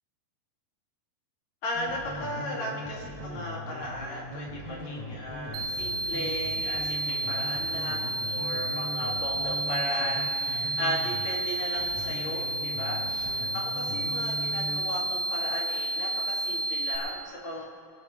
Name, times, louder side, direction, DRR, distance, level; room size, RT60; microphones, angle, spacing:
voice 1, 1.6-17.6, left 1 dB, 50° left, -3 dB, 3.3 m, -36 dB
sound 1, 1.7-11.3 11.7-14.8, equal, 10° right, 2.6 m, -40 dB
sound 2, 5.5-17.0, right 2 dB, 65° right, 2.4 m, -31 dB
21.5 x 11.5 x 3.3 m, 2.3 s
omnidirectional pair, 4.5 m